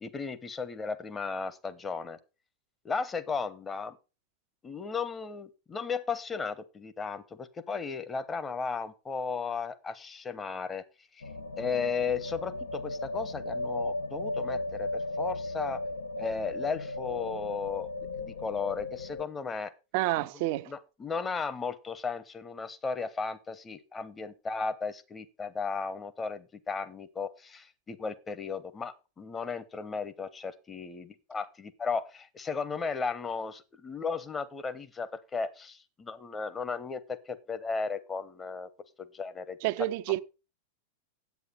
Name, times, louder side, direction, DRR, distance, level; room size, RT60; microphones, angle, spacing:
voice 1, 0.0-2.2 2.8-4.0 4.6-10.8 11.6-15.8 16.2-17.9 18.2-19.7 20.2-20.3 20.7-38.7 39.1-39.6, left 5 dB, 15° left, 1.0 m, -35 dB
sound 1, 11.2-19.3, left 2 dB, 70° left, 0.9 m, -36 dB
voice 2, 19.9-20.7 39.6-40.2, right 17 dB, 45° right, 0.6 m, -29 dB
9.4 x 8.4 x 5.5 m
figure-of-eight pair, 90°, 0 cm